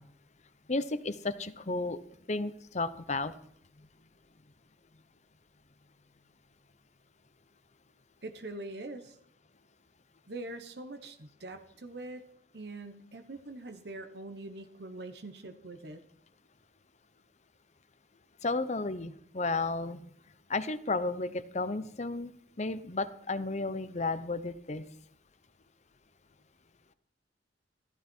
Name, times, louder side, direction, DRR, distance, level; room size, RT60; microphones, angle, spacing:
voice 1, 0.7-2.0 2.3-3.3 18.4-20.0 20.5-22.3 22.6-24.8, left 3 dB, 40° left, 13 dB, 0.9 m, -33 dB
voice 2, 8.2-9.2 10.3-12.2 12.5-16.0, right 2 dB, 65° right, 8 dB, 1.1 m, -43 dB
14.5 x 13.0 x 4.6 m, 0.70 s
head